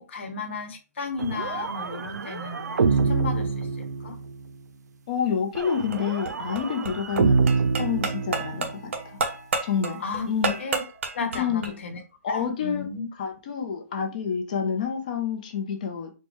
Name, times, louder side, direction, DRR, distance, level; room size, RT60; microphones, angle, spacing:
voice 1, 0.0-4.2 10.0-10.3 10.6-10.8 11.1-13.0, left 4 dB, 45° left, 1.1 m, -34 dB
sound 1, 1.2-4.4 5.6-8.8, right 4 dB, 80° right, 0.5 m, -26 dB
voice 2, 5.1-9.2 9.6-10.5 11.3-11.7 12.2-12.9 13.2-16.1, left 7 dB, 25° left, 0.6 m, -28 dB
sound 2, 5.9-11.7, right 4 dB, 45° right, 0.8 m, -31 dB
4.4 x 2.2 x 4.5 m
hypercardioid pair, 170°, 9 cm